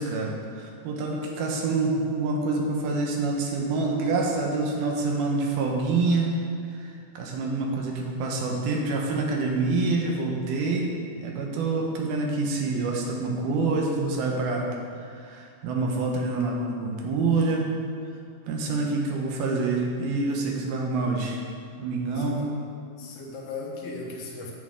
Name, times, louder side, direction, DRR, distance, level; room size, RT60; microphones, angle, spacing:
voice 1, 0.0-6.3 6.6-14.7 15.0-17.7 18.5-21.4 21.8-22.5, right 3 dB, 75° right, 0 dB, 2.7 m, -27 dB
voice 2, 22.1-22.5 23.0-24.5, left 3 dB, 80° left, -2 dB, 3.2 m, -37 dB
9.9 x 8.7 x 3.6 m, 2.3 s
omnidirectional pair, 4.7 m